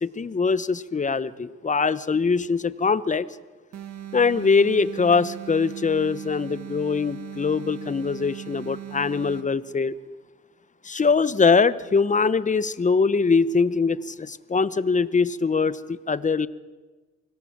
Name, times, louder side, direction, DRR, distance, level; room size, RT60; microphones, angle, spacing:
voice 1, 0.0-3.3 4.1-9.9 10.8-16.5, left 4 dB, 25° left, 16 dB, 0.9 m, -22 dB
sound 1, 3.7-9.6, right 11 dB, 60° right, 1.8 m, -38 dB
25.0 x 18.0 x 7.4 m, 1.3 s
cardioid pair, 90°, 30 cm